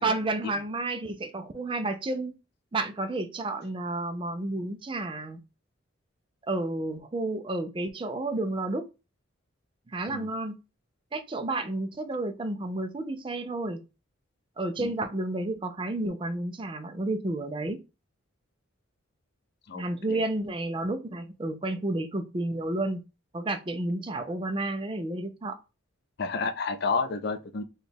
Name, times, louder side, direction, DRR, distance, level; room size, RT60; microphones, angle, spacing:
voice 1, 0.0-2.3 2.7-5.4 6.5-8.9 9.9-10.6 11.1-13.8 14.6-17.8 19.7-23.0 23.3-25.6, right 2 dB, 25° right, 0.4 m, -31 dB
voice 2, 26.2-27.6, left 4 dB, 50° left, 0.4 m, -30 dB
4.2 x 2.3 x 3.3 m
head